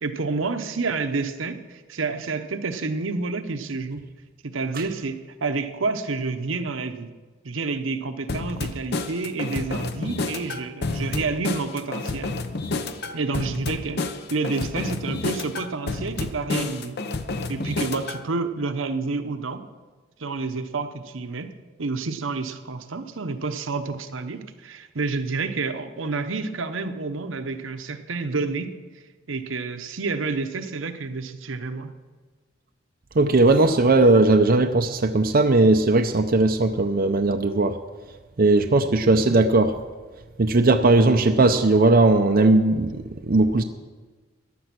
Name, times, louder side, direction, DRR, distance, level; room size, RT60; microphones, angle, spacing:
voice 1, 0.0-4.0 4.4-7.1 7.4-12.4 13.1-17.0 17.5-19.6 20.2-21.5 21.8-28.8 29.3-32.0 38.7-38.9, right 3 dB, 75° right, 9 dB, 0.9 m, -29 dB
sound 1, 8.3-18.2, left 3 dB, 55° left, 0.8 m, -30 dB
voice 2, 33.2-37.8 38.4-39.7 40.4-43.6, right 2 dB, 50° right, 5 dB, 0.6 m, -18 dB
14.5 x 10.5 x 6.0 m, 1.3 s
head